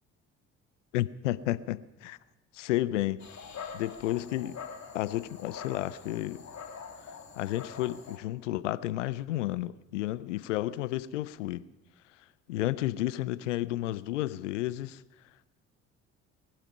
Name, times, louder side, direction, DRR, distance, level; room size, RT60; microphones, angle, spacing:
voice 1, 0.9-2.2 2.5-3.3 3.7-4.6 4.9-6.4 7.4-11.7 12.5-15.0, left 15 dB, 85° left, 0.5 m, -32 dB
Dog, 3.2-8.2, left 6 dB, 50° left, 2.6 m, -44 dB
20.5 x 12.0 x 5.5 m
hypercardioid pair, 50°, 36 cm